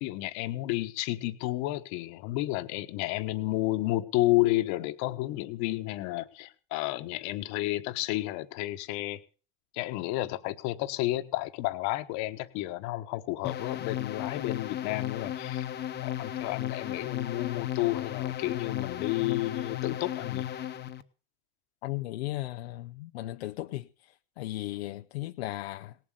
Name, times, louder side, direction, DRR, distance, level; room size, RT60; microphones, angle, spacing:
voice 1, 0.0-9.2 9.7-15.6 16.0-20.5, left 17 dB, 60° left, 1.3 m, -31 dB
sound 1, 13.4-21.0, left 11 dB, 30° left, 1.0 m, -35 dB
voice 2, 21.8-26.0, left 16 dB, 85° left, 0.6 m, -36 dB
18.5 x 7.6 x 6.7 m
supercardioid pair, 105°, 31 cm